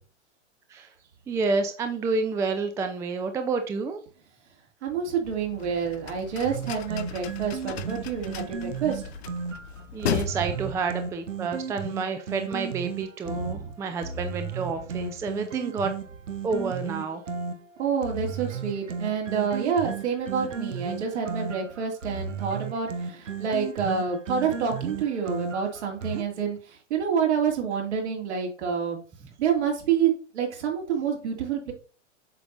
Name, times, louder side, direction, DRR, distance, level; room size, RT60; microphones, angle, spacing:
voice 1, 1.3-4.0 9.9-15.9 16.4-17.2, right 4 dB, 10° right, 7 dB, 0.4 m, -29 dB
voice 2, 4.8-9.1 10.3-10.6 13.2-13.7 17.8-29.0 29.4-31.7, right 7 dB, 60° right, 1 dB, 2.5 m, -28 dB
sound 1, 5.2-10.3, left 10 dB, 55° left, 0.7 m, -36 dB
sound 2, 6.4-26.2, right 5 dB, 80° right, 1.0 m, -35 dB
8.1 x 5.9 x 2.6 m, 0.38 s
figure-of-eight pair, 100°, 37 cm